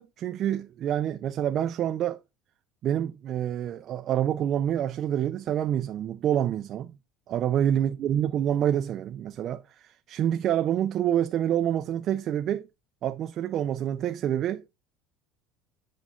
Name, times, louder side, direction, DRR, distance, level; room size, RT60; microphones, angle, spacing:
voice 1, 0.0-2.2 2.8-6.9 7.3-12.7 13.0-14.6, right 10 dB, 35° right, 0.4 m, -27 dB
8.4 x 5.4 x 3.7 m
cardioid pair, 165°, 0 cm